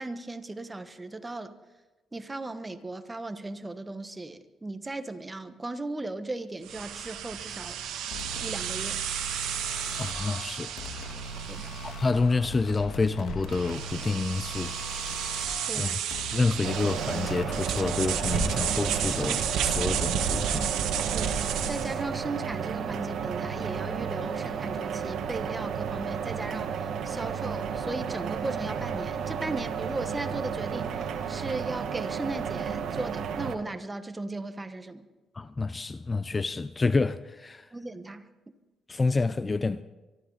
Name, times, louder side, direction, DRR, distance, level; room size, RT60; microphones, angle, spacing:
voice 1, 0.0-1.5 2.1-7.8 8.4-9.0 11.5-11.8 15.1-15.2 15.7-16.0 21.1-35.1 37.7-38.3, right 2 dB, 20° right, 1.2 m, -37 dB
sound 1, 6.6-22.0, right 8 dB, 85° right, 1.5 m, -32 dB
sound 2, 8.1-18.8, left 1 dB, 80° left, 1.5 m, -40 dB
voice 2, 10.0-10.7 11.8-14.7 15.7-16.0 16.3-20.7 35.3-37.7 38.9-39.8, left 3 dB, 25° left, 0.4 m, -28 dB
sound 3, 16.6-33.5, right 7 dB, 70° right, 1.4 m, -33 dB
24.0 x 13.5 x 4.0 m
cardioid pair, 90°, 0 cm